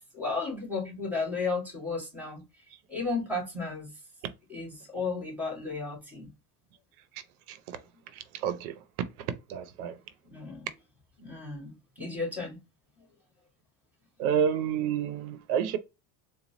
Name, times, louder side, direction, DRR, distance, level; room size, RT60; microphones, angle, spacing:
voice 1, 0.1-2.4 2.9-3.9 4.5-6.3 10.3-10.7 11.2-12.6, left 3 dB, 5° right, 2.1 m, -33 dB
voice 2, 7.5-7.8 8.1-8.8 9.2-10.0 14.2-15.8, right 8 dB, 85° right, 0.6 m, -30 dB
4.0 x 2.2 x 2.9 m
cardioid pair, 140°, 43 cm